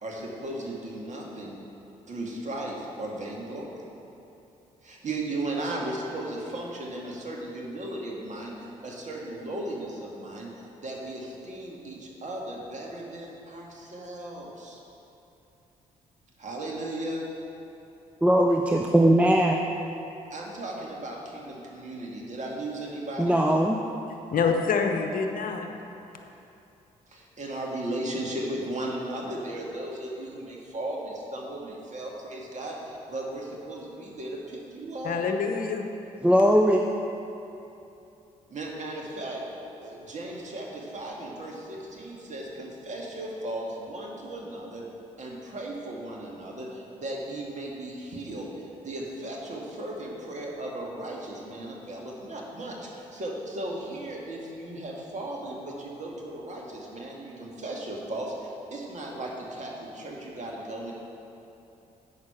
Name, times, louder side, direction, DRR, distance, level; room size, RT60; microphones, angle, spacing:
voice 1, 0.0-1.6 2.1-3.8 4.8-10.5 10.8-14.8 16.4-17.2 20.3-23.4 27.1-35.2 38.5-39.4 39.8-44.8 45.2-60.9, right 1 dB, 45° right, -2 dB, 2.0 m, -36 dB
voice 2, 18.2-19.6 23.2-23.8 36.2-36.9, equal, 5° right, 1 dB, 0.6 m, -20 dB
voice 3, 24.3-25.7 35.0-35.9, left 5 dB, 60° left, 4 dB, 0.9 m, -26 dB
8.7 x 6.3 x 5.8 m, 2.9 s
hypercardioid pair, 50°, 17 cm